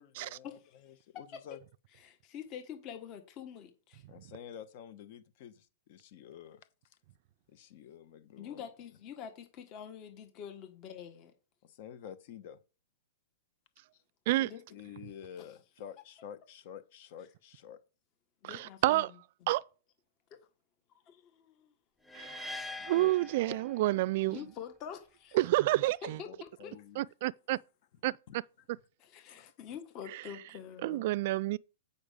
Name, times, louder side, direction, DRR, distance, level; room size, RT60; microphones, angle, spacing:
voice 1, 0.0-1.6 4.1-6.6 7.5-8.7 11.6-12.6 13.9-14.0 14.7-17.8 21.1-21.2 22.8-23.2 23.5-23.9 26.2-27.1 28.3-28.4, left 9 dB, 50° left, 1.1 m, -50 dB
voice 2, 2.0-4.0 8.4-11.3 14.4-14.6 15.4-15.5 18.4-19.1 19.4-19.5 20.3-20.4 20.9-21.7 24.2-25.4 26.0-26.7 29.0-31.0, left 8 dB, 35° left, 1.4 m, -46 dB
voice 3, 18.4-19.1 19.5-19.6 22.1-24.4 25.3-26.2 27.0-27.6 28.0-28.1 30.8-31.6, right 17 dB, 50° right, 0.4 m, -29 dB
sound 1, 22.1-24.2, left 2 dB, ahead, 0.9 m, -44 dB
8.7 x 5.5 x 5.1 m
hypercardioid pair, 145°, 0 cm